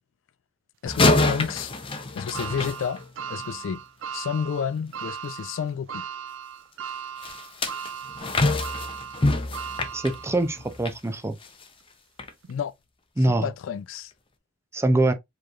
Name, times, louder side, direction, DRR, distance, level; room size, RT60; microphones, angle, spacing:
voice 1, 0.8-1.7 2.2-3.0 3.3-3.8 4.1-6.0 12.5-12.7 13.3-14.1, left 7 dB, 80° left, 0.3 m, -30 dB
sound 1, 0.9-3.4 7.2-11.0 11.4-11.6 12.2-12.3, left 2 dB, 25° left, 0.6 m, -26 dB
sound 2, 2.3-10.7 11.2-11.3 12.4-12.5, right 7 dB, 85° right, 0.4 m, -37 dB
voice 2, 9.9-11.4 13.2-13.5 14.7-15.1, right 2 dB, 15° right, 0.5 m, -23 dB
4.8 x 3.0 x 2.3 m
head